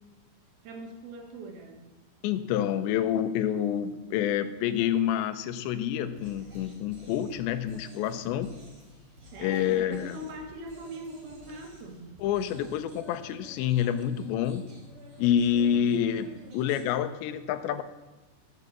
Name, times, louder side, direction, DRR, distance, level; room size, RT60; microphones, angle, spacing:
voice 1, 0.6-1.9 9.3-12.2 15.7-16.1, right 2 dB, 65° right, 2 dB, 3.3 m, -42 dB
voice 2, 2.2-8.5 9.4-10.2 12.2-14.7 15.2-16.3 16.5-17.8, left 10 dB, 85° left, 11 dB, 2.9 m, -28 dB
sound 1, 6.1-16.8, right 1 dB, 30° right, 2.4 m, -52 dB
12.0 x 8.0 x 7.3 m, 1.2 s
omnidirectional pair, 5.2 m